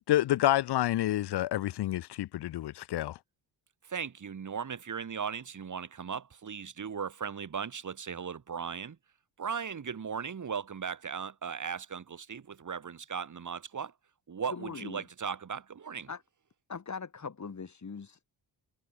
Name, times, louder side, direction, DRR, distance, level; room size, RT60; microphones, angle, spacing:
voice 1, 0.1-3.2, left 14 dB, 55° left, 0.7 m, -28 dB
voice 2, 3.8-9.0 9.4-13.9 14.3-16.1, right 6 dB, 40° right, 2.4 m, -37 dB
voice 3, 14.5-15.0 16.1-16.2 16.7-18.2, left 5 dB, 35° left, 5.0 m, -41 dB
cardioid pair, 75°, 47 cm